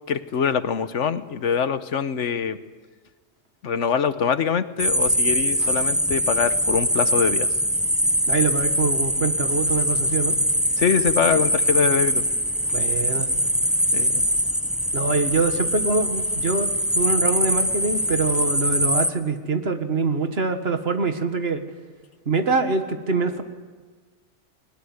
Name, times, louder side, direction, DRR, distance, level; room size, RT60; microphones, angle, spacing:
voice 1, 0.1-2.6 3.6-7.5 10.8-12.2 13.9-14.2, left 7 dB, 75° left, 12 dB, 1.3 m, -24 dB
sound 1, 4.8-19.1, equal, ahead, 0.9 m, -22 dB
voice 2, 8.3-10.4 12.7-13.3 14.9-16.7 17.0-21.6 22.3-23.4, right 3 dB, 55° right, 7 dB, 1.8 m, -24 dB
21.0 x 19.5 x 9.6 m, 1.4 s
omnidirectional pair, 1.2 m